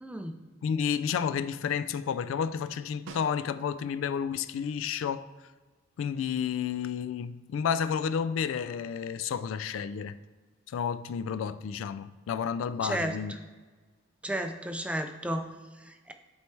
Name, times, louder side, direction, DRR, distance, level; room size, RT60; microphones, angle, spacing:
voice 1, 0.0-0.5 12.8-13.2 14.2-16.1, right 1 dB, 5° right, 0.3 m, -33 dB
voice 2, 0.6-5.3 6.0-10.1 10.7-13.3, left 7 dB, 80° left, 0.3 m, -31 dB
Snare drum, 3.1-4.0 8.4-8.5, right 3 dB, 80° right, 0.6 m, -48 dB
8.2 x 4.5 x 3.2 m
head